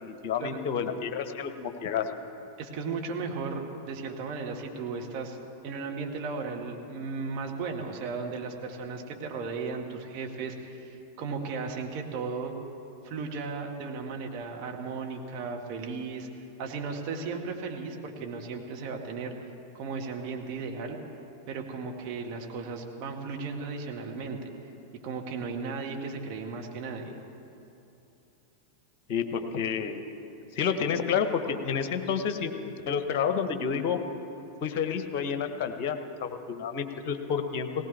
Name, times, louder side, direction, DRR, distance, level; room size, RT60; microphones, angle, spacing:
voice 1, 0.0-2.1 29.1-30.0 30.5-34.0 34.6-37.9, left 7 dB, 45° left, 8 dB, 1.2 m, -30 dB
voice 2, 2.6-5.4 5.6-12.5 13.0-16.3 16.6-19.3 19.7-21.0 21.5-24.4 25.0-27.1, right 4 dB, 40° right, 1 dB, 1.8 m, -35 dB
18.5 x 17.5 x 3.4 m, 2.8 s
figure-of-eight pair, 90°, 0 cm